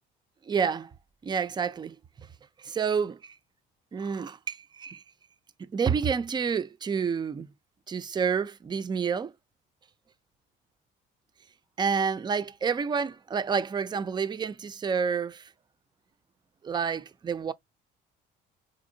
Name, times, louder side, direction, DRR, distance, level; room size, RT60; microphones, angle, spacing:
voice 1, 0.5-0.9 1.2-2.0 2.6-3.4 3.9-5.0 5.6-7.5 7.9-9.3 11.8-15.5 16.6-17.5, right 6 dB, 20° right, 0.4 m, -29 dB
3.5 x 2.7 x 2.6 m
supercardioid pair, 70°, 21 cm